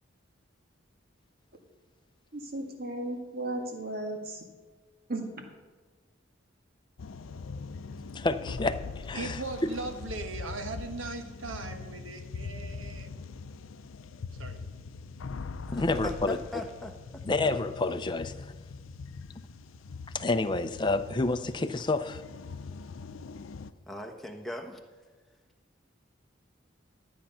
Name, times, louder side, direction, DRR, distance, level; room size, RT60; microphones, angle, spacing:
voice 1, 2.3-4.4 5.1-5.3, right 2 dB, 50° right, 3 dB, 1.8 m, -35 dB
sound 1, 7.0-23.7, left 4 dB, 90° left, 0.5 m, -42 dB
voice 2, 8.1-9.7 15.7-16.4 17.2-18.5 20.1-22.2, left 2 dB, 25° left, 9 dB, 0.5 m, -29 dB
voice 3, 9.1-13.1 14.4-14.6, right 3 dB, 85° right, 6 dB, 1.3 m, -38 dB
voice 4, 15.7-17.2 23.9-24.8, left 2 dB, ahead, 2 dB, 1.1 m, -40 dB
12.5 x 8.7 x 5.6 m, 1.3 s
head